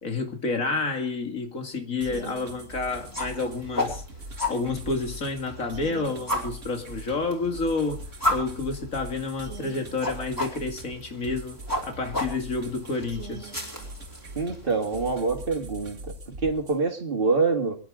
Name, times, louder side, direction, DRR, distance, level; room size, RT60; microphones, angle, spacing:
voice 1, 0.0-4.0 4.5-13.5, left 3 dB, 80° left, 2.7 m, -30 dB
sound 1, 2.0-16.8, right 2 dB, 65° right, 2.3 m, -41 dB
sound 2, 2.9-15.2, left 1 dB, 15° left, 4.5 m, -34 dB
voice 2, 14.4-16.0 16.4-17.8, right 4 dB, 45° right, 2.2 m, -25 dB
25.5 x 11.0 x 3.8 m
omnidirectional pair, 1.4 m